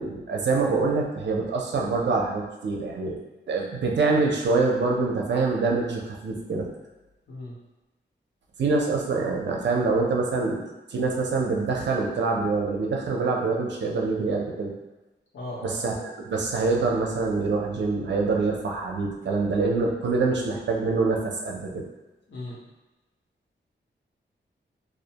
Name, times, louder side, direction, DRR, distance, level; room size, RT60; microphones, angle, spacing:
voice 1, 0.0-3.2 3.5-6.7 8.6-14.7 15.6-21.8, right 3 dB, 65° right, 0 dB, 0.5 m, -25 dB
voice 2, 7.3-7.6 15.3-15.8 22.3-22.7, left 1 dB, 90° left, -8 dB, 0.9 m, -37 dB
2.4 x 2.1 x 2.7 m, 1.1 s
wide cardioid pair, 130°, 20 cm